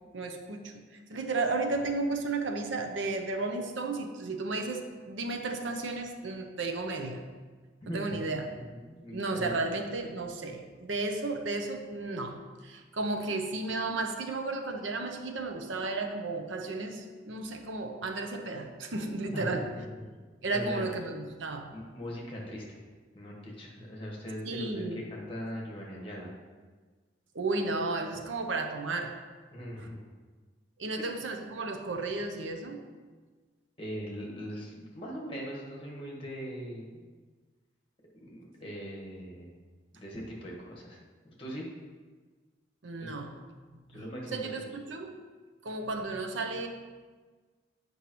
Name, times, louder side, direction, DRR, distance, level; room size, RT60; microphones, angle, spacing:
voice 1, 0.1-0.8 1.1-7.2 7.9-8.5 9.1-19.7 20.4-21.7 24.4-25.0 27.3-29.1 29.8-29.9 30.8-32.8 42.8-43.3 43.9-44.0 44.3-45.2 45.6-46.7, right 3 dB, 90° right, 5 dB, 0.7 m, -33 dB
voice 2, 7.9-9.6 19.3-20.2 20.5-20.9 21.7-22.8 23.1-26.3 29.5-30.0 30.9-31.1 33.8-37.0 38.1-39.5 39.9-41.0 41.2-41.7 43.0-43.1 43.6-44.4, equal, 30° left, -2 dB, 1.4 m, -40 dB
8.4 x 5.3 x 3.1 m, 1.4 s
head